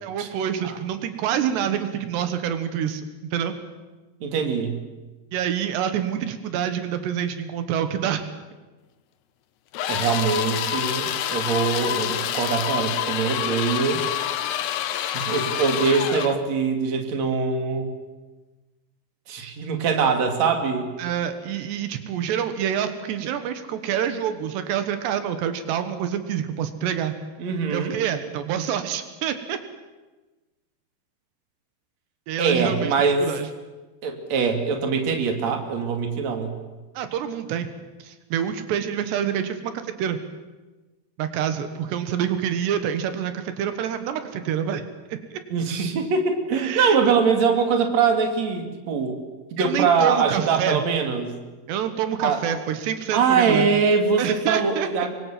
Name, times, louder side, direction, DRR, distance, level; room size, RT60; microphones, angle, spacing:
voice 1, 0.0-3.0 3.3-3.6 5.3-8.2 21.0-27.1 27.7-29.6 32.3-33.5 37.0-37.7 38.0-40.2 41.2-45.4 46.5-47.0 49.6-50.8 51.7-53.7 54.2-55.1, right 9 dB, 85° right, 9 dB, 3.6 m, -27 dB
voice 2, 4.2-4.8 9.9-14.0 15.0-17.9 19.3-20.9 27.4-27.9 32.4-33.3 34.0-36.5 45.5-49.2 49.5-51.3 52.2-52.4 53.1-55.1, right 5 dB, 45° right, 4 dB, 3.5 m, -23 dB
sound 1, 9.7-16.4, left 11 dB, 85° left, 3.2 m, -27 dB
26.5 x 23.5 x 7.6 m, 1.2 s
omnidirectional pair, 4.8 m